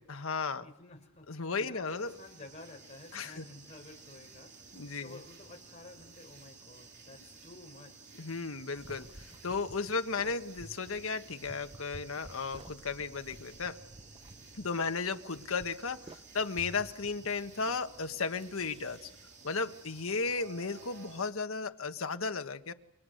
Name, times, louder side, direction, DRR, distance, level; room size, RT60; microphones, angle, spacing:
voice 1, 0.1-0.6 1.3-2.1 3.1-3.4 4.7-5.2 8.2-13.8 14.5-19.1 19.4-22.7, left 4 dB, 80° left, 8 dB, 1.4 m, -35 dB
voice 2, 0.6-8.1, left 2 dB, 35° left, 3 dB, 4.6 m, -52 dB
sound 1, 1.9-21.3, right 4 dB, 55° right, 3.6 m, -54 dB
sound 2, 8.7-19.3, right 1 dB, 25° right, 0.9 m, -54 dB
29.5 x 24.5 x 6.6 m, 0.82 s
head